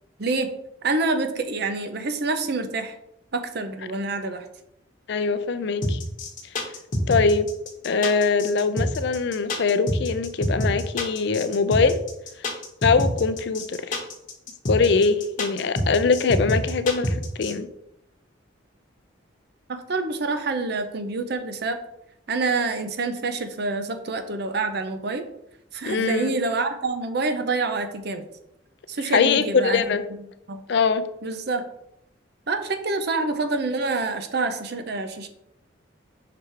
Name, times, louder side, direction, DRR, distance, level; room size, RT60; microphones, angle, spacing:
voice 1, 0.2-0.5 0.8-2.9 3.3-4.4 19.7-21.8 22.3-25.3 25.7-28.3 28.9-30.0 30.5-30.6 31.2-31.6 32.5-35.3, right 3 dB, 55° right, 8 dB, 0.6 m, -27 dB
voice 2, 5.1-6.0 7.1-7.5 7.8-12.0 12.8-14.0 14.7-17.7 25.8-26.3 29.1-30.0 30.7-31.0, left 4 dB, 60° left, 12 dB, 0.4 m, -22 dB
sound 1, 5.8-17.5, left 1 dB, 45° left, 1.0 m, -26 dB
5.9 x 3.4 x 4.7 m, 0.80 s
head